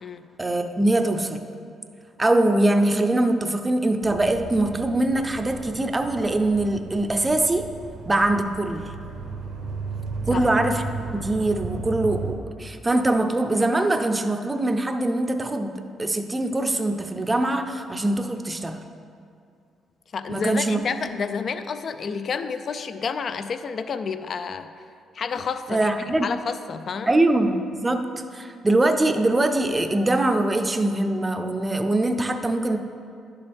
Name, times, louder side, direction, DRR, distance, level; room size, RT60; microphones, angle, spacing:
voice 1, 0.4-1.4 2.2-7.7 8.1-8.9 10.3-10.8 11.1-18.8 20.3-20.8 25.7-26.3 27.1-28.0 28.3-32.8, right 2 dB, 15° right, 7 dB, 0.6 m, -23 dB
sound 1, 4.0-12.3, right 4 dB, 75° right, 0.9 m, -35 dB
voice 2, 20.1-24.7 25.1-25.9 26.2-27.1, left 5 dB, 45° left, 11 dB, 0.4 m, -29 dB
11.5 x 6.9 x 3.5 m, 2.4 s
cardioid pair, 110°, 0 cm